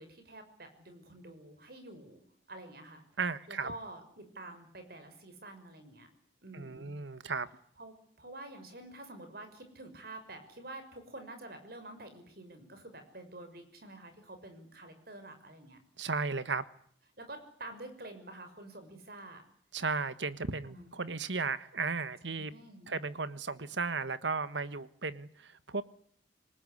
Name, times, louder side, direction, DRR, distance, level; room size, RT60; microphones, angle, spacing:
voice 1, 0.0-2.2 2.5-3.0 3.5-6.1 6.4-6.9 7.8-15.8 17.2-19.4 20.6-20.9 22.3-22.9, right 2 dB, 55° right, 6.2 m, -48 dB
voice 2, 3.2-3.7 6.5-7.5 16.0-16.6 19.7-22.5 22.9-25.8, right 4 dB, 75° right, 1.4 m, -35 dB
27.0 x 19.5 x 9.9 m
head